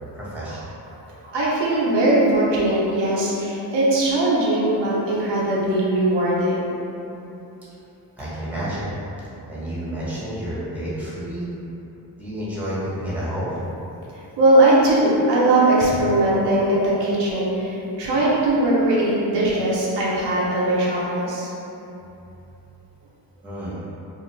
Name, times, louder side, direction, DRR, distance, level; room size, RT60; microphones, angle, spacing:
voice 1, 0.1-0.7 8.2-8.9 9.5-11.4 12.2-13.6 23.4-23.7, equal, 5° right, -10 dB, 1.1 m, -30 dB
voice 2, 1.2-6.6 14.4-21.5, right 1 dB, 80° right, -6 dB, 0.7 m, -20 dB
2.4 x 2.4 x 3.1 m, 3.0 s
cardioid pair, 60°, 42 cm